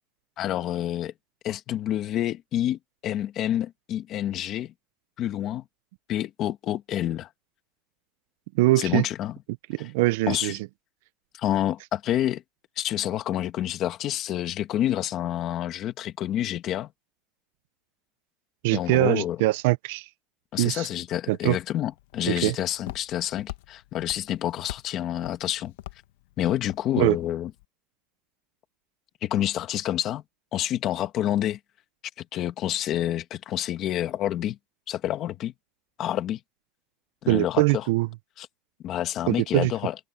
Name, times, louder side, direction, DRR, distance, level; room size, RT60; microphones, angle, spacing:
voice 1, 0.4-1.1 1.4-4.7 5.2-5.6 6.1-7.3 8.8-9.4 9.8-9.9 10.3-10.6 11.3-12.4 12.8-16.9 18.7-19.4 20.5-25.7 26.4-27.5 29.2-30.2 30.5-31.6 32.3-34.6 34.9-35.5 36.0-36.4 37.2-37.9 38.4-38.5 38.8-40.0, left 12 dB, 30° left, 1.5 m, -28 dB
voice 2, 8.6-9.0 9.7-10.6 18.6-20.0 20.6-20.9 21.3-21.6 22.3-22.5 27.0-27.2 37.3-38.1 39.3-39.7, right 20 dB, 65° right, 0.5 m, -22 dB
Walk footsteps, 21.5-27.6, left 16 dB, 85° left, 1.1 m, -44 dB
cardioid pair, 180°, 0 cm